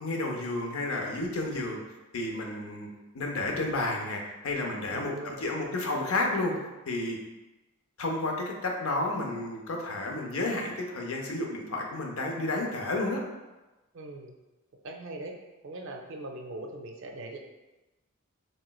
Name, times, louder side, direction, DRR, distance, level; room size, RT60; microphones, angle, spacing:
voice 1, 0.0-1.8 2.1-2.9 3.1-6.5 6.9-7.2 8.0-13.2, left 2 dB, 75° left, 0 dB, 0.6 m, -31 dB
voice 2, 4.9-5.5 13.9-14.3 14.8-15.4 15.6-17.4, right 2 dB, 60° right, 3 dB, 0.4 m, -41 dB
3.1 x 3.0 x 2.2 m, 1.1 s
head